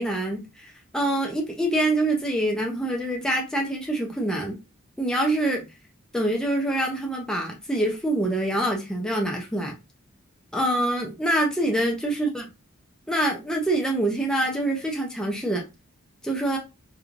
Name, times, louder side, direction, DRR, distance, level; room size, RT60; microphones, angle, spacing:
voice 1, 0.0-4.6 5.0-5.7 6.1-9.7 10.5-12.5 13.1-15.6 16.2-16.6, right 1 dB, 5° left, 0.5 m, -25 dB
3.1 x 2.3 x 2.4 m
head